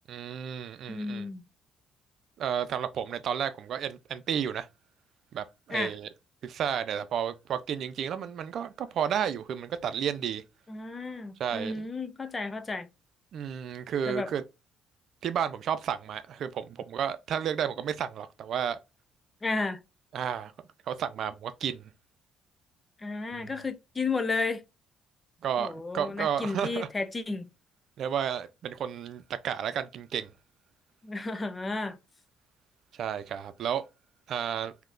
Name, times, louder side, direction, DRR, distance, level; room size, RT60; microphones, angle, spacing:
voice 1, 0.1-1.3 2.4-4.7 5.3-6.1 6.4-10.4 11.4-11.9 13.3-14.4 15.2-18.8 20.1-20.5 20.9-21.9 23.3-23.5 25.4-26.9 28.0-30.3 33.0-33.9 34.3-34.7, right 8 dB, 65° right, 0.5 m, -32 dB
voice 2, 0.9-1.4 5.7-5.9 10.7-12.9 14.1-14.3 19.4-19.8 23.0-24.6 25.6-27.5 31.0-32.0, left 3 dB, 25° left, 0.6 m, -32 dB
3.6 x 2.8 x 2.5 m
cardioid pair, 95°, 0 cm